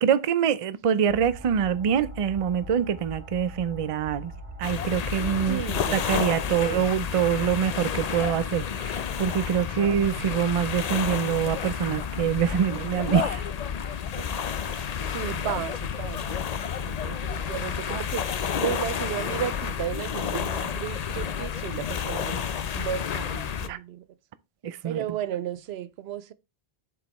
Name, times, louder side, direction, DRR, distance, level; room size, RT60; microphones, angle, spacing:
voice 1, 0.0-4.3 4.6-5.6 5.9-13.4 23.7-23.8 24.6-25.0, right 8 dB, 45° right, 0.4 m, -25 dB
sound 1, 1.0-6.1, right 2 dB, 10° right, 2.0 m, -42 dB
sound 2, 4.6-23.7, left 7 dB, 50° left, 0.6 m, -30 dB
voice 2, 5.5-6.1 6.5-6.9 9.8-10.3 13.9-16.4 16.8-22.5 22.7-24.0 24.8-26.3, right 10 dB, 90° right, 0.8 m, -34 dB
7.6 x 5.2 x 3.0 m
omnidirectional pair, 1.0 m